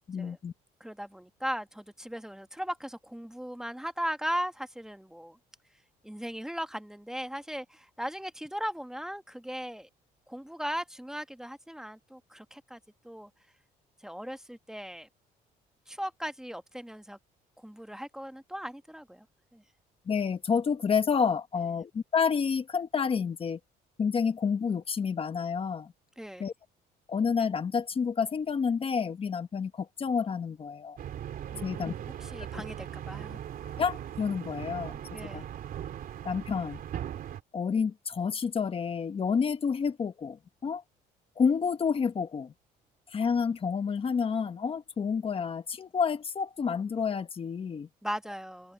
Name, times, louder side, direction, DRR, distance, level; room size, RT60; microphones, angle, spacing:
voice 1, 0.1-0.5 20.1-23.6 24.0-25.9 26.4-26.5 27.1-31.0 31.6-31.9 32.5-32.6 33.8-35.0 35.3-35.4 36.2-36.8 37.5-40.8 41.4-42.5 43.1-47.9, left 6 dB, 35° left, 1.2 m, -29 dB
voice 2, 0.8-5.4 6.0-9.9 10.3-12.8 13.0-13.3 14.0-15.1 15.9-17.2 17.6-19.3 19.5-19.6 26.2-26.5 31.5-33.4 35.1-35.4 48.0-48.7, equal, 5° right, 1.3 m, -38 dB
sound 1, 31.0-37.4, right 10 dB, 60° right, 3.3 m, -39 dB
cardioid pair, 110°, 17 cm